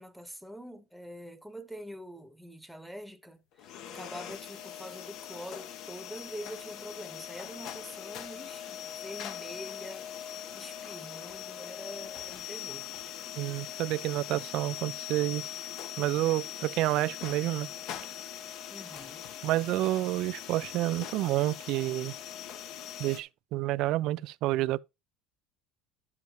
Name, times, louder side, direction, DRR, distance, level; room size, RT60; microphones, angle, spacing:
voice 1, 0.0-12.9 18.7-19.2, equal, ahead, 1.0 m, -45 dB
sound 1, 3.6-23.2, left 10 dB, 60° left, 1.0 m, -41 dB
voice 2, 13.4-15.5 16.0-17.7 19.4-22.1 23.0-24.8, right 16 dB, 60° right, 0.4 m, -29 dB
10.5 x 7.2 x 2.9 m
supercardioid pair, 120°, 0 cm